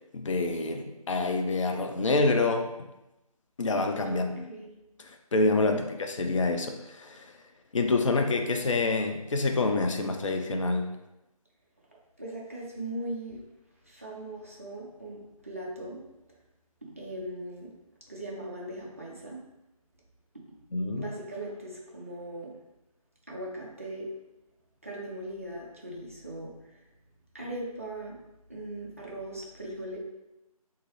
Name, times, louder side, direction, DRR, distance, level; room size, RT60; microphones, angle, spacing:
voice 1, 0.1-2.7 3.6-4.5 5.0-7.3 7.7-10.9 20.7-21.1, left 3 dB, 55° left, 4 dB, 0.4 m, -27 dB
voice 2, 12.2-13.4 13.9-16.0 16.8-17.7 18.1-19.4 21.0-22.5 23.3-24.1 24.8-26.8 27.3-28.2 28.5-30.0, right 1 dB, 25° right, -4 dB, 0.4 m, -39 dB
3.0 x 2.3 x 3.0 m, 0.94 s
figure-of-eight pair, 155°, 19 cm